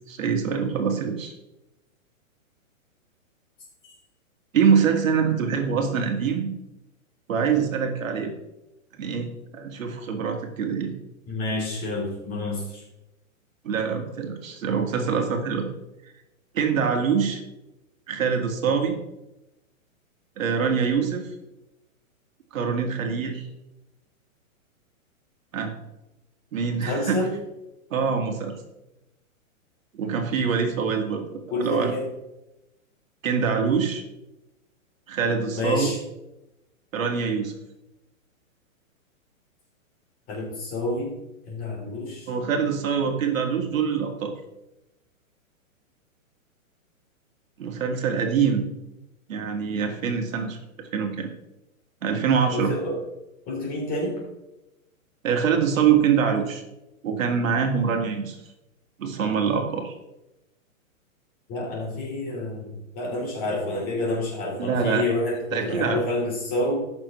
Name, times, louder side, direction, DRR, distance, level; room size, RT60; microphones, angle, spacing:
voice 1, 0.0-1.3 4.5-6.5 7.3-8.3 9.0-9.3 9.5-10.9 13.6-15.7 16.5-17.4 18.1-18.9 20.4-21.3 22.5-23.5 25.5-25.7 26.5-27.3 27.9-28.6 29.9-31.9 33.2-34.0 35.1-35.9 36.9-37.5 42.3-44.3 47.6-48.7 49.3-51.3 52.0-52.7 55.2-56.6 57.0-58.4 59.0-59.9 64.6-65.1 65.5-66.0, right 6 dB, 70° right, 4 dB, 1.9 m, -24 dB
voice 2, 11.3-12.8 26.8-27.3 31.5-32.0 35.5-36.0 40.3-41.1 41.5-42.3 52.5-53.0 53.5-54.2 61.5-66.7, left 2 dB, 20° left, -3 dB, 3.2 m, -28 dB
15.0 x 6.2 x 3.1 m, 0.93 s
hypercardioid pair, 160°, 42 cm